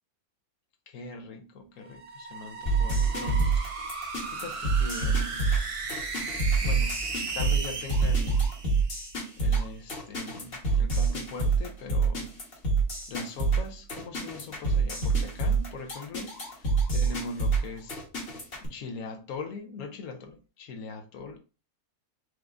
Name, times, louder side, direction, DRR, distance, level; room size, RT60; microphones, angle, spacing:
voice 1, 0.9-3.8 4.3-5.5 6.6-7.0 7.3-8.4 9.4-12.3 13.1-18.0 18.6-21.4, left 3 dB, 75° left, 1.2 m, -41 dB
sound 1, 1.8-9.3, right 4 dB, 60° right, 0.3 m, -36 dB
sound 2, 2.7-18.7, right 4 dB, 45° left, 1.4 m, -26 dB
4.5 x 2.6 x 3.4 m
omnidirectional pair, 1.5 m